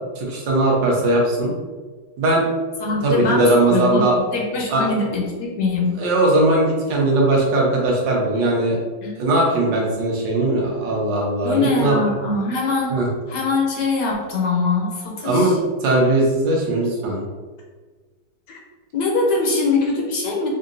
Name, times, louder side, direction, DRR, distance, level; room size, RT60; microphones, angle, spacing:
voice 1, 0.2-1.5 2.2-2.5 3.0-4.2 4.7-4.9 6.0-8.8 9.2-12.0 12.9-13.1 15.2-17.2, right 2 dB, 75° right, -3 dB, 1.6 m, -19 dB
voice 2, 2.8-6.0 9.0-9.1 11.4-13.0 13.3-15.6 18.5-18.6 18.9-20.5, left 3 dB, 70° left, -1 dB, 1.3 m, -22 dB
5.0 x 2.7 x 2.5 m, 1.4 s
omnidirectional pair, 2.1 m